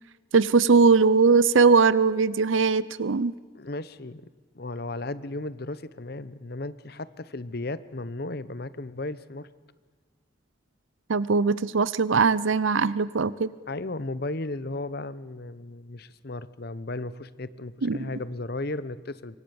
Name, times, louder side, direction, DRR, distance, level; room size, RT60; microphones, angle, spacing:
voice 1, 0.3-3.3 11.1-13.5 17.8-18.1, right 4 dB, 80° right, 18 dB, 0.7 m, -20 dB
voice 2, 3.5-4.2 4.5-9.5 13.7-19.4, left 2 dB, 50° left, 15 dB, 0.9 m, -35 dB
26.5 x 23.5 x 7.1 m, 1.4 s
head